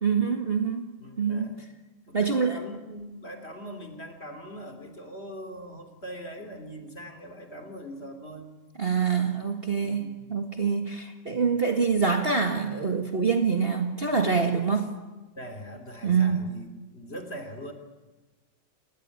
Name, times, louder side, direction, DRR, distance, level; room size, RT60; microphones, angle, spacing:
voice 1, 0.0-1.5 2.1-2.6 8.8-14.9 16.0-16.6, right 5 dB, 30° right, 4 dB, 1.8 m, -25 dB
voice 2, 1.0-1.7 2.1-8.5 9.8-10.3 15.4-17.7, equal, 30° left, 6 dB, 3.2 m, -41 dB
29.5 x 18.0 x 9.8 m, 1.2 s
omnidirectional pair, 2.2 m